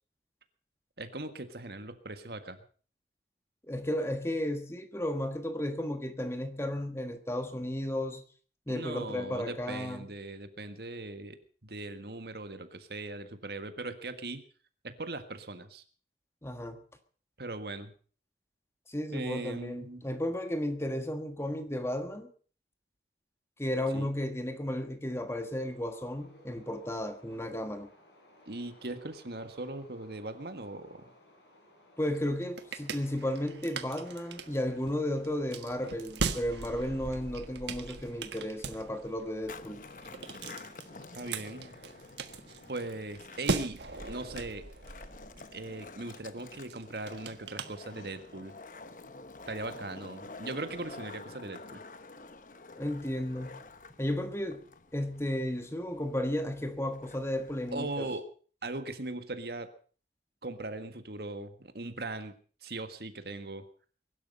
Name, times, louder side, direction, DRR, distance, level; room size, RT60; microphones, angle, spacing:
voice 1, 1.0-2.6 8.7-14.4 14.8-15.8 17.4-17.9 19.1-20.1 23.9-24.1 28.5-31.0 41.2-41.7 42.7-43.8 44.1-44.7 45.5-48.5 49.5-51.8 57.7-58.3 58.6-59.7 60.4-62.3 62.6-63.7, right 2 dB, 60° right, 1.7 m, -39 dB
voice 2, 3.7-8.2 8.7-10.1 16.4-16.8 18.9-22.3 23.6-27.9 32.0-39.8 52.8-53.6 54.0-54.6 54.9-58.1, left 1 dB, 15° left, 1.5 m, -34 dB
sound 1, 25.5-39.9, left 1 dB, 85° left, 7.1 m, -60 dB
sound 2, 32.1-48.4, right 3 dB, 80° right, 1.4 m, -40 dB
Skateboard, 39.3-58.0, left 3 dB, 45° left, 1.1 m, -49 dB
22.0 x 12.0 x 5.4 m
head